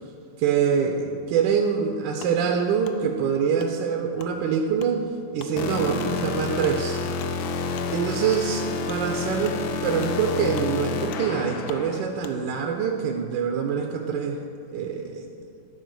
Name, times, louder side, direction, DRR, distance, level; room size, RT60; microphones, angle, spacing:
voice 1, 0.4-5.0 5.3-7.0 7.9-14.4 14.7-15.3, right 7 dB, 75° right, 3 dB, 1.3 m, -25 dB
Wood, 2.2-2.4 2.8-3.0 3.6-3.7 4.2-4.3 4.8-4.9 5.4-5.5 6.0-6.1 6.6-6.8 7.2-7.3 7.7-7.9 8.3-8.4 8.9-9.0 9.4-9.6 10.0-10.2 10.5-10.7 11.1-11.2 11.7-11.8 12.2-12.4, left 9 dB, 70° left, 1.0 m, -43 dB
sound 1, 5.6-12.1, left 4 dB, 85° left, 1.5 m, -29 dB
11.5 x 4.7 x 6.2 m, 2.5 s
omnidirectional pair, 2.1 m